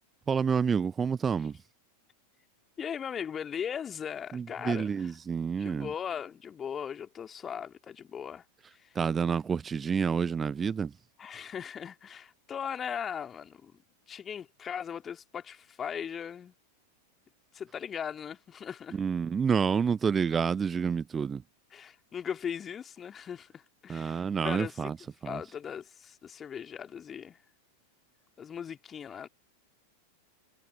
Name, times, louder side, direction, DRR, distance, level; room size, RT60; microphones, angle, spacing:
voice 1, 0.3-1.6 4.3-5.9 9.0-10.9 18.9-21.4 23.9-25.0 25.2-25.4, right 6 dB, 20° right, 0.3 m, -28 dB
voice 2, 2.8-5.1 5.6-8.4 8.7-9.0 11.2-13.7 14.1-16.5 17.5-19.0 21.7-27.4 28.4-29.3, left 8 dB, 20° left, 2.7 m, -38 dB
figure-of-eight pair, 90°, 0 cm